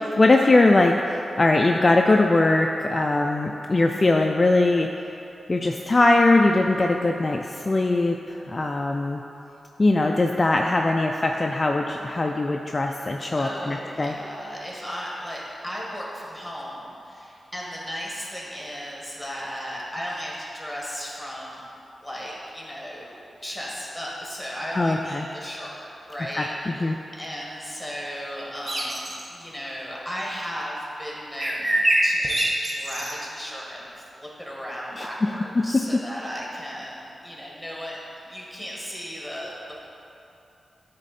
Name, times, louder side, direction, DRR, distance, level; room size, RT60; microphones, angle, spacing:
voice 1, 0.2-4.9 5.5-9.2 9.8-14.1 24.8-25.3 26.4-27.0 35.0-35.3 35.6-35.8, left 2 dB, 35° left, 2 dB, 0.3 m, -21 dB
voice 2, 13.4-21.6 22.0-26.9 27.2-33.9 34.1-39.7, equal, ahead, -4 dB, 1.6 m, -35 dB
sound 1, 28.7-29.3 31.4-33.1, right 1 dB, 35° right, 1.0 m, -24 dB
9.9 x 3.7 x 4.2 m, 2.9 s
wide cardioid pair, 85°, 0 cm